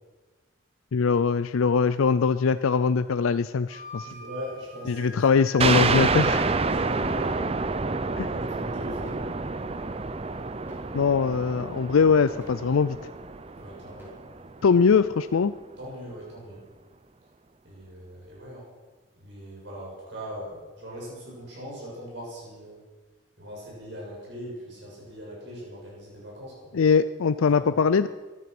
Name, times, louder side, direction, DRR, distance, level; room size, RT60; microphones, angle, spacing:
voice 1, 0.9-4.1 4.9-6.5 8.2-8.3 10.9-13.0 14.6-15.5 26.7-28.1, left 5 dB, 85° left, 13 dB, 0.5 m, -22 dB
Wind instrument woodwind instrument, 3.7-7.4, right 1 dB, 75° right, 6.3 m, -44 dB
voice 2, 4.0-5.2 6.7-7.4 8.2-9.2 13.6-14.1 15.8-16.6 17.6-18.7 19.2-22.8 23.4-26.7 27.5-27.7, equal, 55° right, -5 dB, 6.7 m, -40 dB
sound 1, 5.6-14.8, right 4 dB, 30° right, 0.6 m, -28 dB
sound 2, 8.6-9.8 10.3-11.0 11.3-11.6 12.0-12.7 12.9-13.1 13.6-14.1, left 2 dB, 10° right, 5.8 m, -52 dB
18.0 x 12.5 x 6.1 m, 1.3 s
head